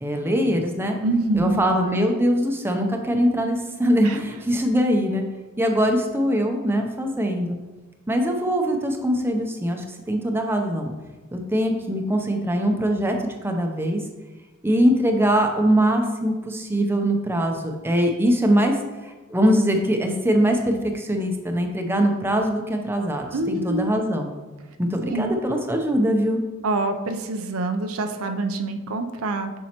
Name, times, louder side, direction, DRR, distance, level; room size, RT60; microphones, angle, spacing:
voice 1, 0.0-1.0 1.3-5.2 5.6-7.6 8.1-10.9 11.3-14.0 14.6-18.8 19.0-24.3 24.8-26.4, equal, 10° right, 3 dB, 0.6 m, -22 dB
voice 2, 1.0-1.6 4.0-4.2 23.3-23.9 25.1-25.4 26.6-29.5, right 2 dB, 80° right, 6 dB, 0.6 m, -25 dB
7.3 x 5.4 x 2.9 m, 1.2 s
head